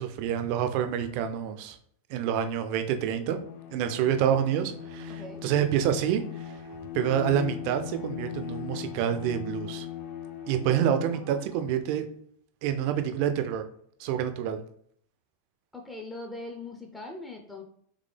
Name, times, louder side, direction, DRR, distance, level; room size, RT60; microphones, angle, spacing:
voice 1, 0.0-1.8 2.1-3.4 3.7-6.5 6.9-9.9 10.5-12.0 12.6-13.6 14.0-14.6, right 9 dB, 45° right, 8 dB, 0.5 m, -27 dB
Bowed string instrument, 3.2-11.7, left 9 dB, 45° left, 0.7 m, -40 dB
voice 2, 5.1-5.4 11.1-11.7 15.7-17.6, left 2 dB, 10° left, 1 dB, 0.5 m, -41 dB
3.7 x 3.3 x 3.3 m, 0.64 s
figure-of-eight pair, 90°, 0 cm